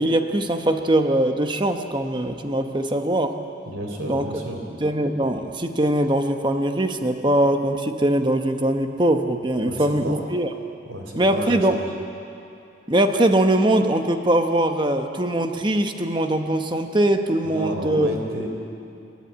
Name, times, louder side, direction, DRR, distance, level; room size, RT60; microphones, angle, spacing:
voice 1, 0.0-3.3 4.1-4.3 4.8-10.5 11.2-11.8 12.9-18.1, right 1 dB, 25° right, 6 dB, 1.0 m, -21 dB
voice 2, 3.7-4.6 9.6-10.2 10.9-11.8 17.4-18.5, right 1 dB, 85° right, 2 dB, 3.6 m, -31 dB
27.0 x 11.5 x 9.1 m, 2.6 s
head